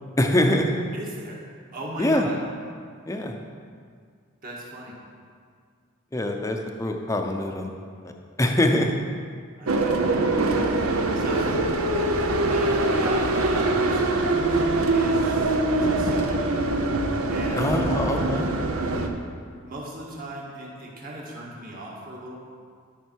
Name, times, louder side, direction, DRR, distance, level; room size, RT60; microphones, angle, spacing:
voice 1, 0.2-0.7 2.0-2.3 3.1-3.3 6.1-7.7 8.0-8.1 8.4-8.9 17.6-18.5, left 1 dB, 15° left, 3 dB, 0.6 m, -23 dB
voice 2, 0.9-1.4 1.7-2.4 4.4-5.0 9.6-10.6 11.1-16.3 17.3-18.2 19.6-22.4, right 1 dB, 40° right, -3 dB, 1.7 m, -37 dB
sound 1, 9.7-19.1, right 2 dB, 80° right, 0.8 m, -23 dB
12.5 x 5.6 x 4.6 m, 2.1 s
head